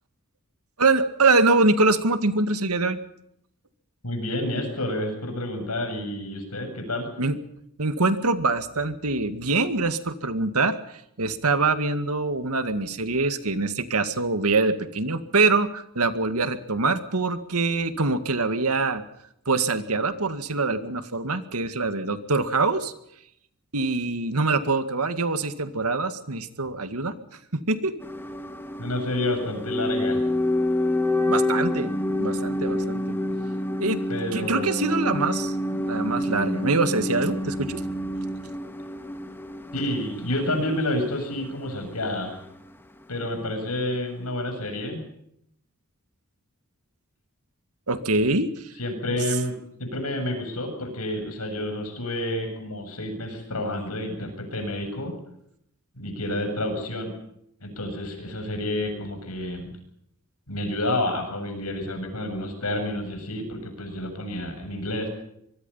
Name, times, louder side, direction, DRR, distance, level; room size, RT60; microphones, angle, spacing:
voice 1, 0.8-3.0 7.2-7.4 7.8-19.0 19.5-22.9 23.7-27.1 27.5-27.9 31.3-31.9 32.2-33.1 33.8-34.0 34.3-37.8 47.9-48.7, right 3 dB, 85° right, 10 dB, 2.0 m, -24 dB
voice 2, 4.0-7.1 28.8-30.3 34.1-34.9 39.7-42.4 43.1-45.0 48.8-55.1 56.0-57.1 57.6-59.7 60.5-65.1, left 1 dB, 85° left, 5 dB, 7.6 m, -29 dB
sound 1, 28.0-42.1 42.3-42.4, left 1 dB, 10° left, 1.7 m, -28 dB
24.5 x 23.0 x 5.7 m, 0.74 s
head